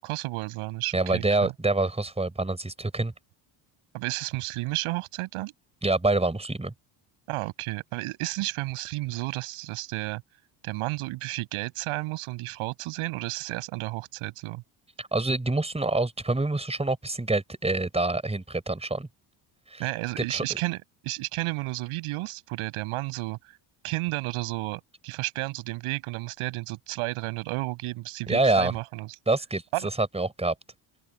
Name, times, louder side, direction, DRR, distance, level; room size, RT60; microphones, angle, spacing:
voice 1, 0.0-1.5 3.9-5.5 7.3-10.2 10.6-14.6 19.8-23.4 23.8-29.1 29.7-29.9, right 20 dB, 85° right, 7.1 m, -32 dB
voice 2, 0.9-3.1 5.8-6.7 15.0-19.1 19.7-19.8 20.2-20.4 28.3-28.7 29.3-29.6 30.0-30.5, right 2 dB, 10° right, 5.3 m, -26 dB
open air
supercardioid pair, 90°, 49 cm